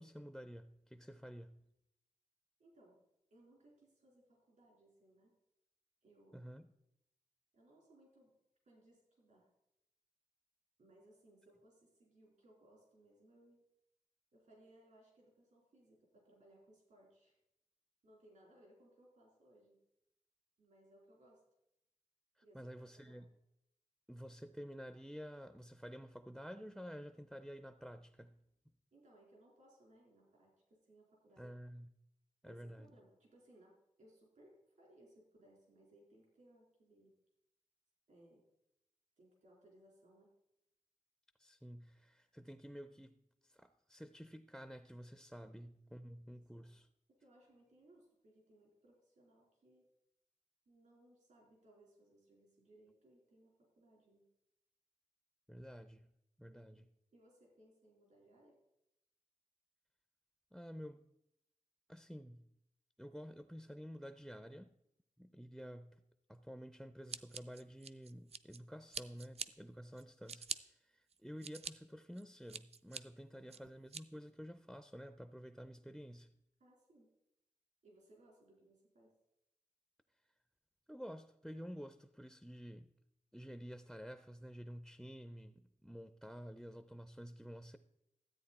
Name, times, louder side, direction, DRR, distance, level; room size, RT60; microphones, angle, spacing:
voice 1, 0.0-1.6 6.3-6.7 22.4-23.3 24.1-28.4 31.4-31.9 32.4-32.9 41.4-46.9 55.5-56.1 56.4-56.9 60.5-61.0 61.9-62.5 63.0-64.7 65.2-66.0 66.3-76.3 80.9-82.9 83.3-87.8, equal, ahead, 0.4 m, -51 dB
voice 2, 2.6-3.0 3.3-5.3 6.0-6.5 7.5-8.3 8.7-9.5 10.8-13.6 14.3-17.4 18.0-19.8 20.6-21.4 22.4-23.3 28.9-31.6 32.4-37.1 38.1-38.5 39.2-40.3 46.0-46.1 46.3-46.7 47.1-49.9 50.7-54.2 56.5-58.6 73.3-73.8 76.6-77.1 77.8-79.1, right 1 dB, 80° right, 3.9 m, -66 dB
Scissors, 67.1-68.6 68.9-69.5 70.0-70.6 71.1-71.7 72.2-73.0 73.5-74.0, right 6 dB, 55° right, 0.4 m, -44 dB
13.0 x 8.5 x 4.2 m
wide cardioid pair, 115°, 13 cm